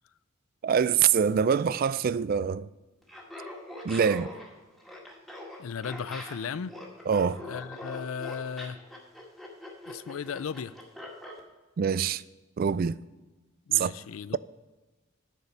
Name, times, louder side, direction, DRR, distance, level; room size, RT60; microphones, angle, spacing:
voice 1, 0.6-2.7 3.8-4.3 7.1-7.4 11.8-12.2 12.6-13.0 13.8-13.9, right 7 dB, 45° right, 0.3 m, -24 dB
Laughter, 3.0-11.4, left 1 dB, ahead, 2.0 m, -43 dB
voice 2, 5.6-6.8 7.4-8.8 9.9-10.7 13.7-14.4, left 6 dB, 75° left, 0.4 m, -36 dB
9.8 x 6.8 x 5.9 m
head